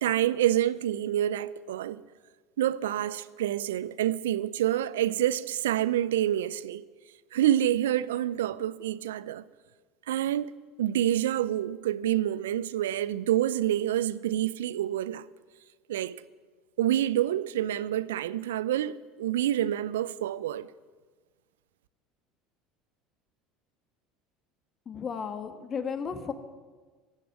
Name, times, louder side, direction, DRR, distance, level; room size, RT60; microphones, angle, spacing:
voice 1, 0.0-2.0 2.6-6.9 7.3-9.5 10.1-10.5 10.8-15.2 15.9-16.2 16.8-20.7, right 12 dB, 80° right, 0.4 m, -27 dB
voice 2, 24.9-26.3, left 6 dB, 35° left, 1.5 m, -34 dB
14.5 x 6.9 x 9.9 m
hypercardioid pair, 70°, 0 cm